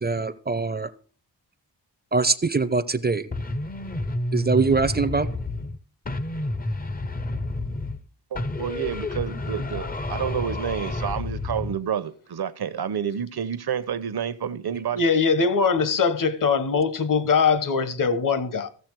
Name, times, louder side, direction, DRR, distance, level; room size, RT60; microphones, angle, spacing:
voice 1, 0.0-0.9 2.1-3.3 4.3-5.3, right 4 dB, 25° right, 0.6 m, -23 dB
sound 1, 3.3-5.8 6.1-8.1 8.4-11.8, left 2 dB, 20° left, 0.6 m, -30 dB
voice 2, 8.3-15.0, right 8 dB, 65° right, 0.8 m, -29 dB
voice 3, 14.9-18.7, left 5 dB, 50° left, 1.1 m, -22 dB
15.0 x 7.1 x 4.6 m
wide cardioid pair, 145°, 42 cm